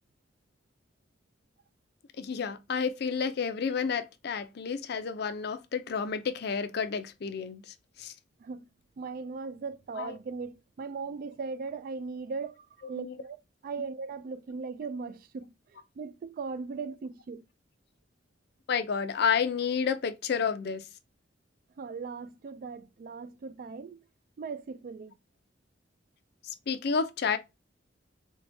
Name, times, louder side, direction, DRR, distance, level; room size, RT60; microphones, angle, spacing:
voice 1, 2.2-7.6 8.0-8.1 10.0-10.1 13.0-13.2 18.7-20.8 26.7-27.4, left 6 dB, 60° left, 0.5 m, -30 dB
voice 2, 9.0-13.4 13.6-15.5 16.0-17.4 21.8-24.0 24.4-25.2, right 4 dB, 50° right, 0.3 m, -38 dB
4.7 x 2.2 x 2.6 m
head